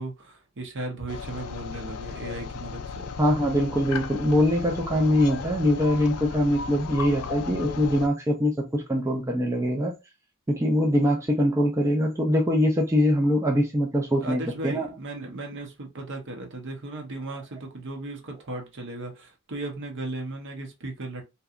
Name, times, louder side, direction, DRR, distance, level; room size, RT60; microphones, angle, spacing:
voice 1, 0.0-3.1 14.2-21.2, right 2 dB, 55° right, 0.8 m, -36 dB
sound 1, 1.1-8.1, left 6 dB, 70° left, 0.3 m, -35 dB
voice 2, 3.2-9.9 10.5-14.9, equal, 15° right, 0.4 m, -23 dB
2.7 x 2.2 x 2.4 m
head